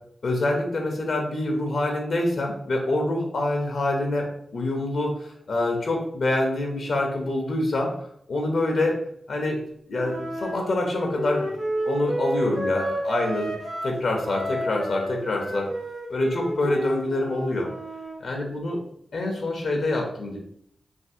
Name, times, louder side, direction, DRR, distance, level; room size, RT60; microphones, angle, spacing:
voice 1, 0.2-4.3 4.5-7.9 8.3-9.0 9.3-9.6 9.9-11.6 11.8-13.6 13.8-15.7 16.1-17.7 18.2-18.8 19.1-20.4, left 2 dB, 70° left, 1 dB, 0.7 m, -26 dB
Wind instrument woodwind instrument, 10.0-14.0 14.2-18.2, equal, 75° right, 1.2 m, -31 dB
3.4 x 2.7 x 2.7 m, 0.68 s
cardioid pair, 45°, 0 cm